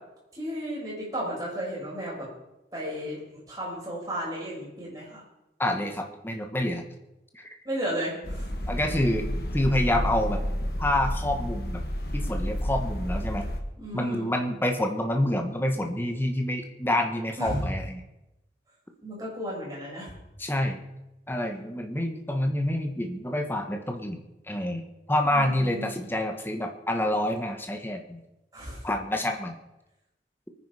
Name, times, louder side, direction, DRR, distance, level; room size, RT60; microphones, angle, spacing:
voice 1, 0.3-2.3 2.7-3.2 3.5-5.2 7.6-8.5 13.8-14.3 17.4-17.6 19.0-20.1 25.2-25.9 28.5-28.8, equal, 20° right, -5 dB, 6.8 m, -33 dB
voice 2, 5.6-6.8 7.3-7.4 8.7-10.4 10.8-11.8 12.1-13.5 13.9-18.0 20.4-20.8 21.3-24.2 24.5-24.8 25.1-28.2 28.8-29.5, left 1 dB, 10° left, 4 dB, 1.4 m, -27 dB
sound 1, 8.2-13.6, equal, 55° left, 1.8 m, -30 dB
23.0 x 9.9 x 5.0 m, 0.93 s
head